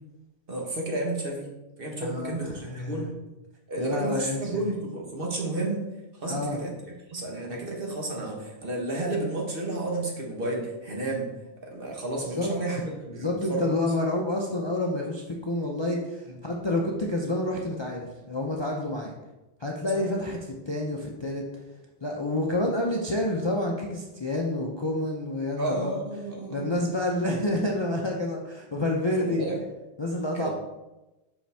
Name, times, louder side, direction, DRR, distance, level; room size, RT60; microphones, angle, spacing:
voice 1, 0.5-1.5 1.8-3.1 3.7-5.8 6.1-6.7 7.1-11.3 11.7-13.7 19.9-20.0 25.6-26.9 29.2-29.6 30.4-30.5, right 2 dB, 55° right, -1 dB, 1.4 m, -31 dB
voice 2, 2.0-3.1 3.8-4.7 6.3-6.6 12.2-19.1 19.6-21.4 22.0-25.9 26.5-29.5 30.0-30.5, left 1 dB, 30° left, -1 dB, 0.5 m, -29 dB
5.7 x 5.1 x 3.4 m, 1.0 s
omnidirectional pair, 1.2 m